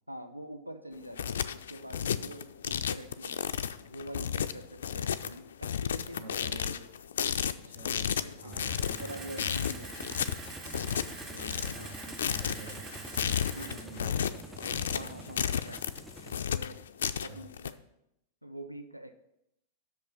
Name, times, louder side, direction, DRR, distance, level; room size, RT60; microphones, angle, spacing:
voice 1, 0.1-3.4 3.9-6.8 7.7-9.9 11.3-11.6 13.6-13.8 14.9-15.9 16.5-16.9 17.1-17.8 18.4-19.1, right 1 dB, 90° right, 8 dB, 0.5 m, -45 dB
sound 1, 0.9-17.7, left 8 dB, 65° left, 0.3 m, -33 dB
voice 2, 5.9-6.8 7.6-9.8 11.1-15.2 17.1-17.5, right 2 dB, 65° right, 3 dB, 1.3 m, -48 dB
sound 2, 8.5-16.4, right 2 dB, 5° right, 0.4 m, -47 dB
Camera, 8.6-13.8, right 3 dB, 40° right, 2.1 m, -46 dB
6.4 x 5.4 x 6.9 m, 0.82 s
figure-of-eight pair, 90°, 0 cm